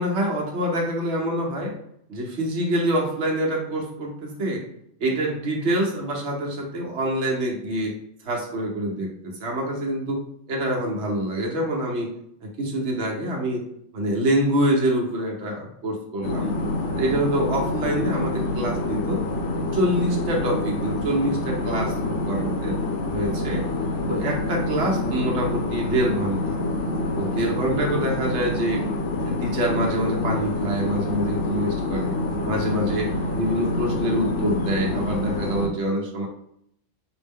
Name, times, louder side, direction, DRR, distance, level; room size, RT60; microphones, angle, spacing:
voice 1, 0.0-1.8 2.1-4.6 5.0-8.0 8.2-10.2 10.5-12.1 12.4-13.6 13.9-16.5 17.0-19.2 19.7-22.8 23.1-23.6 24.1-26.6 27.2-28.8 29.3-32.1 32.4-36.3, right 1 dB, 65° right, -1 dB, 1.2 m, -26 dB
sound 1, 16.2-35.7, left 2 dB, 70° left, 1.0 m, -27 dB
5.1 x 2.1 x 3.6 m, 0.72 s
omnidirectional pair, 1.3 m